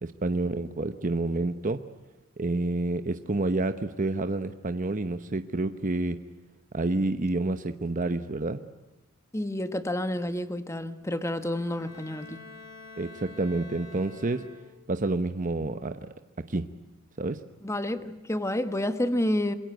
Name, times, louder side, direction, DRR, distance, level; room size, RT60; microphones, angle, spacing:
voice 1, 0.0-1.8 2.4-6.2 6.7-8.6 13.0-14.4 14.9-16.1 16.4-16.7 17.2-17.4, right 2 dB, 40° right, 9 dB, 0.9 m, -29 dB
voice 2, 9.3-12.4 17.6-19.5, left 1 dB, 15° left, 10 dB, 1.3 m, -29 dB
Bowed string instrument, 11.3-15.0, left 3 dB, 60° left, 7.8 m, -48 dB
26.5 x 22.0 x 8.0 m, 1.0 s
head